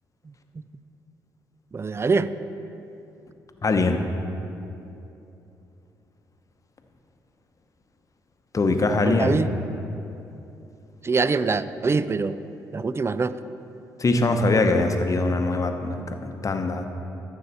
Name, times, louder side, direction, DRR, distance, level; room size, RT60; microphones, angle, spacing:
voice 1, 1.7-2.3 9.0-9.5 11.0-12.4 12.7-13.4, right 4 dB, 25° right, 14 dB, 0.4 m, -24 dB
voice 2, 3.6-4.0 8.5-9.4 14.0-16.9, left 3 dB, 35° left, 6 dB, 0.9 m, -22 dB
13.5 x 6.6 x 4.1 m, 2.9 s
hypercardioid pair, 45°, 9 cm